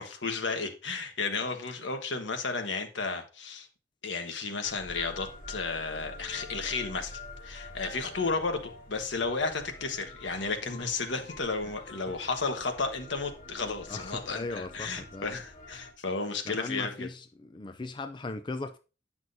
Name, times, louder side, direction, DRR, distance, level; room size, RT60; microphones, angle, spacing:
voice 1, 0.0-3.7 4.0-17.1, left 4 dB, 85° left, 1.3 m, -33 dB
sound 1, 4.6-15.9, left 2 dB, 45° left, 1.5 m, -46 dB
voice 2, 13.9-15.3 16.5-18.8, left 3 dB, 25° left, 0.4 m, -38 dB
9.5 x 6.0 x 2.7 m
head